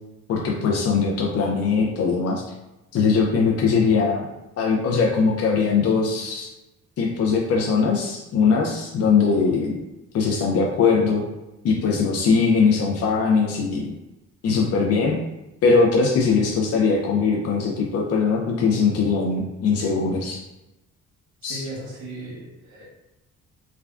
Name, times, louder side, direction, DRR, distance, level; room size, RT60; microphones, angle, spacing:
voice 1, 0.3-2.4 2.9-4.3 4.6-6.5 7.0-9.8 10.1-11.2 11.6-13.9 14.4-15.2 15.6-20.4 21.4-21.6, left 5 dB, 55° left, 0 dB, 0.5 m, -21 dB
voice 2, 21.4-22.8, right 1 dB, 70° right, -4 dB, 1.3 m, -36 dB
3.4 x 2.2 x 2.4 m, 0.96 s
cardioid pair, 90°, 30 cm